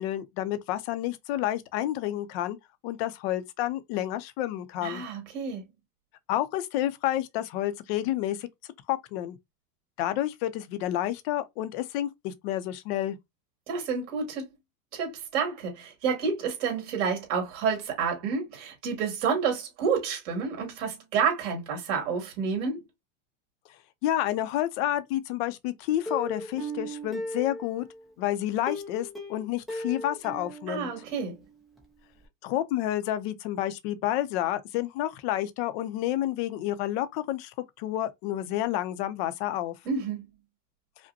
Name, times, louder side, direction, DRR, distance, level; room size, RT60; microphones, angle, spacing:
voice 1, 0.0-2.6 2.8-5.0 6.3-8.5 8.9-9.4 10.0-13.2 24.0-27.9 28.2-30.9 32.4-37.5 37.8-39.7, left 13 dB, 45° left, 0.6 m, -29 dB
voice 2, 4.8-5.6 13.7-14.5 14.9-22.8 30.7-31.4 39.9-40.3, right 6 dB, 55° right, 2.3 m, -29 dB
Plucked string instrument, 26.1-28.0 28.7-31.5 31.8-31.9 32.2-32.3, equal, ahead, 0.4 m, -37 dB
5.1 x 2.1 x 2.7 m
supercardioid pair, 150°, 44 cm